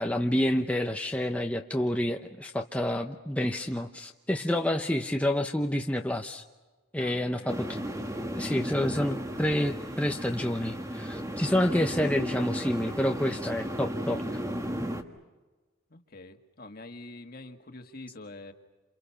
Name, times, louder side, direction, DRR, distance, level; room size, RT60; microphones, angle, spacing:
voice 1, 0.0-6.4 6.9-7.7 8.3-14.4, left 1 dB, 5° left, 3 dB, 0.8 m, -28 dB
voice 2, 7.0-7.5 15.9-18.5, left 2 dB, 45° left, 6 dB, 1.8 m, -46 dB
sound 1, 7.5-15.0, equal, 15° right, 1.5 m, -34 dB
28.5 x 28.5 x 5.8 m, 1.2 s
head